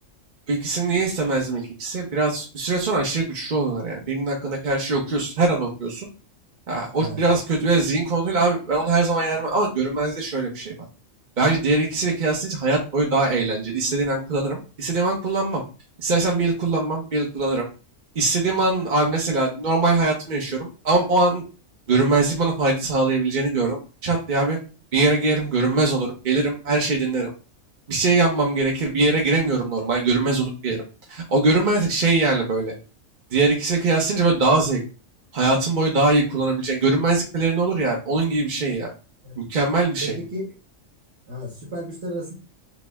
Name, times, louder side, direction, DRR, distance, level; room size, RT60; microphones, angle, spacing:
voice 1, 0.5-6.1 6.7-10.7 11.4-15.6 16.0-17.6 18.2-21.4 21.9-24.6 24.9-27.3 27.9-30.8 31.1-32.7 33.3-34.8 35.3-38.9 39.4-40.2, right 3 dB, 45° right, -1 dB, 0.8 m, -22 dB
voice 2, 7.0-7.3 39.2-39.4 40.0-40.4 41.3-42.3, right 1 dB, 60° right, -3 dB, 1.3 m, -33 dB
6.1 x 2.0 x 3.4 m, 0.34 s
omnidirectional pair, 1.4 m